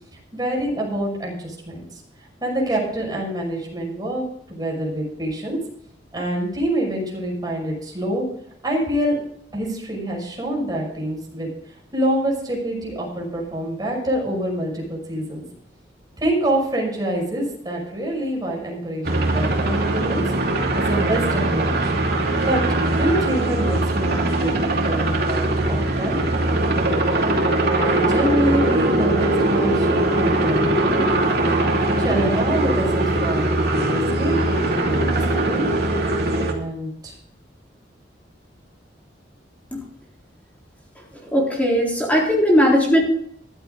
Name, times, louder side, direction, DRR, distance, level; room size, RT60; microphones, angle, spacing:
voice 1, 0.3-2.0 2.4-5.6 6.1-8.2 8.6-9.2 9.5-11.5 11.9-15.4 16.2-20.2 20.6-21.9 22.4-22.6 22.9-26.2 27.7-35.6 36.3-37.1, right 1 dB, 20° right, -1 dB, 5.8 m, -26 dB
sound 1, 19.0-36.5, right 2 dB, 60° right, 2.7 m, -21 dB
voice 2, 41.3-43.0, equal, 10° left, -3 dB, 3.9 m, -18 dB
14.5 x 13.0 x 3.9 m, 0.70 s
head